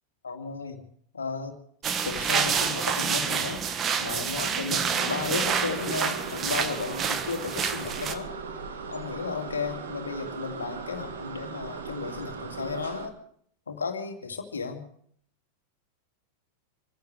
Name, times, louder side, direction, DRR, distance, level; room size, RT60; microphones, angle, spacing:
voice 1, 0.2-0.8 1.1-1.5 2.0-3.6 4.0-8.3 8.9-13.1 13.7-14.8, left 5 dB, 70° left, 5 dB, 2.4 m, -34 dB
sound 1, 1.8-8.1, right 7 dB, 25° right, 1.5 m, -28 dB
sound 2, 5.0-13.1, right 5 dB, 65° right, 2.3 m, -38 dB
26.0 x 15.0 x 3.4 m, 0.63 s
figure-of-eight pair, 90°, 0 cm